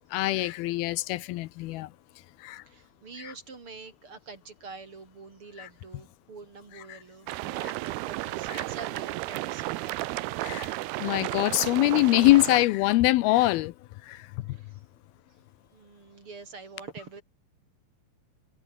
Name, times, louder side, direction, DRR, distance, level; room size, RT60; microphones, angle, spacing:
voice 1, 0.1-1.9 2.4-2.6 3.2-3.3 5.6-5.7 6.9-7.0 7.6-7.7 8.5-8.6 10.4-10.7 11.0-13.7 14.0-14.3, left 18 dB, 80° left, 2.5 m, -24 dB
voice 2, 2.6-10.4 14.5-14.8 15.7-17.2, right 4 dB, 35° right, 3.3 m, -46 dB
sound 1, 7.3-12.7, right 18 dB, 85° right, 2.8 m, -33 dB
omnidirectional pair, 4.5 m